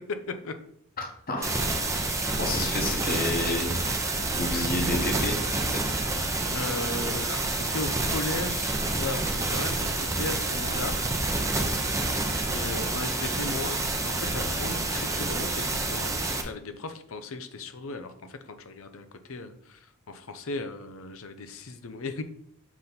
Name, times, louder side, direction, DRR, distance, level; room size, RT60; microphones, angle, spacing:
voice 1, 1.0-1.5 2.3-3.8 4.3-5.4 5.7-5.8, left 2 dB, 40° left, 1 dB, 1.3 m, -30 dB
sound 1, 1.4-16.4, right 2 dB, 15° right, 0.7 m, -28 dB
voice 2, 6.5-11.0 12.5-22.2, left 3 dB, 65° left, 8 dB, 0.8 m, -36 dB
7.1 x 4.3 x 4.0 m, 0.69 s
head